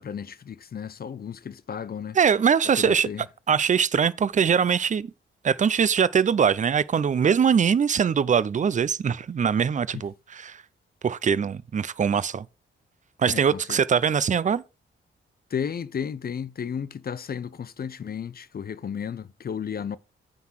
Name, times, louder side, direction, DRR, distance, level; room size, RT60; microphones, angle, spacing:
voice 1, 0.0-2.2 2.8-3.2 13.3-13.6 15.5-20.0, left 7 dB, 45° left, 0.7 m, -33 dB
voice 2, 2.1-5.1 5.4-10.6 11.0-12.5 13.2-14.6, right 7 dB, 35° right, 0.5 m, -22 dB
9.3 x 4.0 x 6.3 m
cardioid pair, 90°, 21 cm